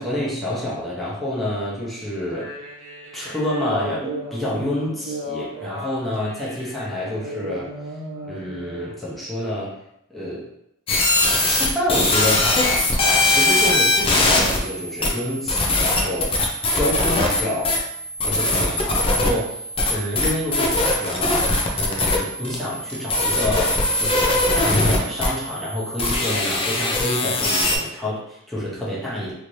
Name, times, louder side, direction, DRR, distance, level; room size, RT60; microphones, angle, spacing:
voice 1, 0.0-2.5 3.1-7.7 8.2-9.8 10.1-10.5 11.4-17.8 18.2-19.6 19.9-29.3, left 1 dB, ahead, -9 dB, 0.8 m, -28 dB
sound 1, 2.2-8.9, right 1 dB, 70° right, 0.9 m, -35 dB
sound 2, 10.9-27.8, left 2 dB, 25° left, 0.5 m, -21 dB
3.1 x 2.8 x 2.6 m, 0.81 s
head